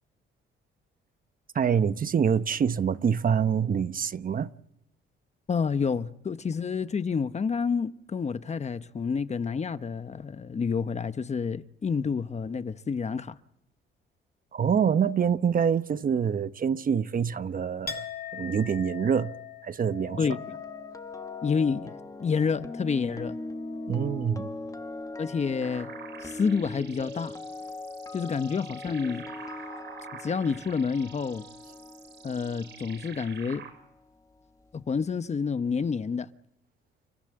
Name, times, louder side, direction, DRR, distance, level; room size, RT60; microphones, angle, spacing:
voice 1, 1.5-4.5 14.5-18.0 18.3-20.4 23.9-24.5, right 7 dB, 45° right, 1.0 m, -26 dB
voice 2, 5.5-13.4 20.2-20.6 21.4-21.9 22.2-23.4 25.2-25.9 26.2-27.3 28.1-29.2 30.2-31.4 32.2-33.6 34.7-36.3, left 5 dB, 35° left, 1.0 m, -29 dB
Chink clink, 17.9-25.6 25.9-26.6, left 7 dB, 50° left, 2.4 m, -43 dB
sound 1, 20.1-34.2 34.4-34.7, left 2 dB, 15° left, 1.4 m, -41 dB
sound 2, 25.6-33.7, right 7 dB, 65° right, 6.3 m, -47 dB
30.0 x 13.5 x 7.8 m
cardioid pair, 90°, 20 cm